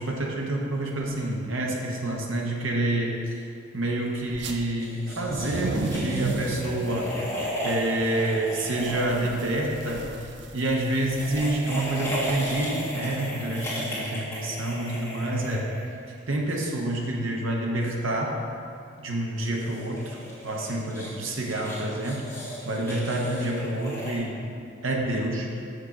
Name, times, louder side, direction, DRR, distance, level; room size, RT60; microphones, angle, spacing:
voice 1, 0.0-3.4 3.7-7.1 7.6-10.1 10.5-15.7 16.3-18.4 19.0-20.2 20.4-22.3 22.6-24.5 24.8-25.6, right 1 dB, 75° right, -1 dB, 1.1 m, -28 dB
sound 1, 4.3-4.6 5.1-13.7, right 2 dB, 55° right, 0.5 m, -35 dB
sound 2, 4.8-9.9 11.0-16.2 19.4-24.2, equal, 15° left, 1.9 m, -35 dB
6.5 x 6.2 x 5.1 m, 2.5 s
head